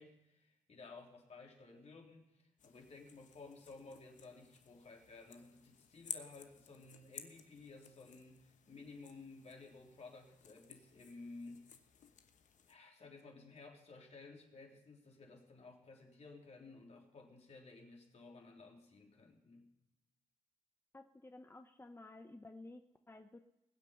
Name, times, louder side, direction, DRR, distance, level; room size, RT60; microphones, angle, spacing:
voice 1, 0.0-2.3 2.6-11.7 12.7-19.7, left 3 dB, 55° left, 0 dB, 3.5 m, -55 dB
sound 1, 2.6-12.8, left 7 dB, 70° left, 1.1 m, -55 dB
voice 2, 20.9-23.4, left 2 dB, 20° left, 7 dB, 0.8 m, -54 dB
20.5 x 8.1 x 5.7 m, 0.95 s
supercardioid pair, 55°, 13 cm